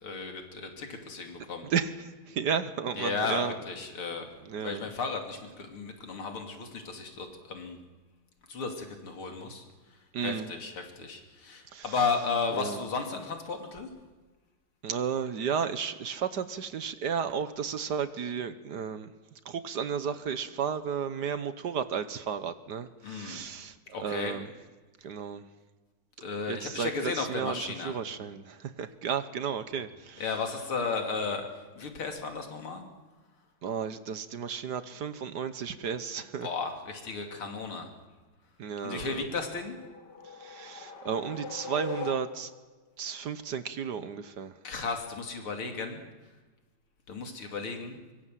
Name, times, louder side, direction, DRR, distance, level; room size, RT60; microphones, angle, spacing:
voice 1, 0.0-1.7 3.0-4.3 4.6-7.8 8.5-9.6 10.2-13.9 23.0-23.4 23.9-24.4 26.2-27.9 30.2-31.4 31.8-32.9 36.4-37.9 38.8-39.8 44.6-46.0 47.1-48.0, left 4 dB, 90° left, 4 dB, 3.7 m, -34 dB
voice 2, 2.3-3.5 4.4-4.8 10.1-10.5 11.7-11.8 12.5-12.8 14.8-19.1 19.4-23.7 24.0-24.5 25.0-25.4 26.5-30.2 33.6-36.5 38.6-39.3 40.4-42.5 43.0-44.5, right 7 dB, 60° right, 12 dB, 1.5 m, -33 dB
sound 1, 39.6-42.7, left 4 dB, 55° left, 2.2 m, -41 dB
24.5 x 23.0 x 7.7 m, 1.3 s
omnidirectional pair, 2.3 m